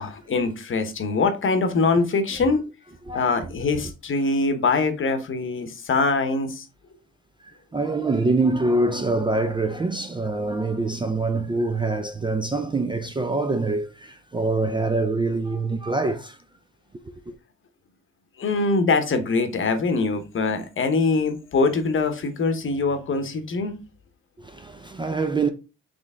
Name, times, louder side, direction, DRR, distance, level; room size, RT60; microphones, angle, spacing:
voice 1, 0.0-2.6 3.1-6.7 18.4-23.8, left 3 dB, 40° left, 0.9 m, -23 dB
voice 2, 3.1-3.8 7.4-16.4 17.3-17.4 24.4-25.5, right 3 dB, 15° right, 0.4 m, -25 dB
4.1 x 3.2 x 3.5 m
cardioid pair, 90°, 30 cm